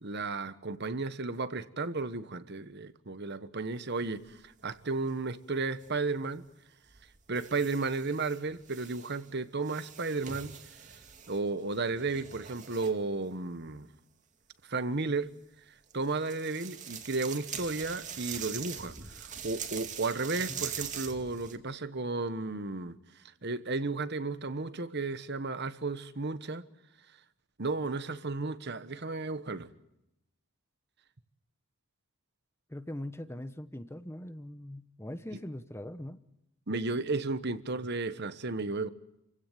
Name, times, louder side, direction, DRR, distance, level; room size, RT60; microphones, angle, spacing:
voice 1, 0.0-4.4 4.6-6.4 7.3-10.5 11.3-13.9 14.7-15.3 15.9-18.9 19.2-22.9 23.4-26.6 27.6-29.7 36.7-38.9, right 3 dB, 50° right, 1.2 m, -33 dB
sound 1, 4.0-4.8 5.8-6.0 6.9-9.3 9.6-13.0 15.9-21.6, right 8 dB, 35° right, 2.3 m, -43 dB
voice 2, 32.7-36.2, left 1 dB, 10° left, 0.9 m, -41 dB
28.0 x 16.5 x 9.2 m
head